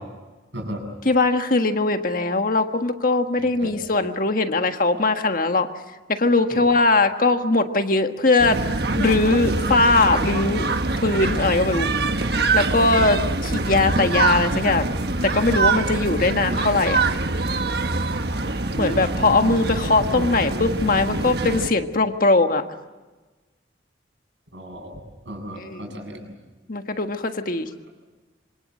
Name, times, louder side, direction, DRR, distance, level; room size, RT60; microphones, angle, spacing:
voice 1, 1.0-5.7 6.1-8.6 9.0-10.6 11.0-11.9 12.5-14.9 15.2-17.0 18.8-22.6 25.6-26.0 26.7-27.7, left 3 dB, 50° left, 6 dB, 1.6 m, -20 dB
sound 1, 8.4-21.7, right 3 dB, 60° right, 1.4 m, -24 dB
voice 2, 24.5-26.3, right 1 dB, 80° right, 3 dB, 7.3 m, -35 dB
26.5 x 25.5 x 7.6 m, 1.2 s
head